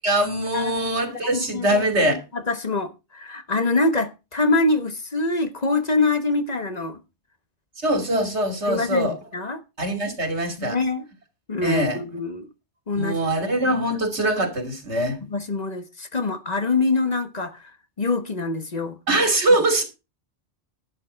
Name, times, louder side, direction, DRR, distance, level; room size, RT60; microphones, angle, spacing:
voice 1, 0.0-2.3 7.8-9.2 9.8-10.8 11.6-12.0 12.9-15.2 19.1-19.8, right 1 dB, 85° right, 3.1 m, -22 dB
voice 2, 0.5-7.0 8.7-9.6 10.6-11.1 11.5-12.5 12.9-13.2 15.3-17.7 18.0-19.0, left 3 dB, 40° left, 1.2 m, -25 dB
11.5 x 8.6 x 4.5 m
omnidirectional pair, 1.1 m